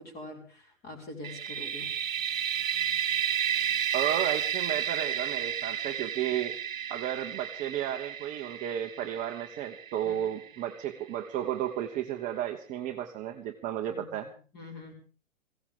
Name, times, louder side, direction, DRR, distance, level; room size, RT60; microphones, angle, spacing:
voice 1, 0.0-1.9 10.0-10.2 13.9-14.9, left 2 dB, 25° left, 2 dB, 5.2 m, -45 dB
sound 1, 1.2-10.9, right 9 dB, 80° right, 0.7 m, -32 dB
voice 2, 3.9-6.5 6.9-14.3, right 11 dB, 20° right, 4 dB, 0.9 m, -33 dB
21.5 x 16.0 x 3.7 m, 0.39 s
figure-of-eight pair, 125°, 39 cm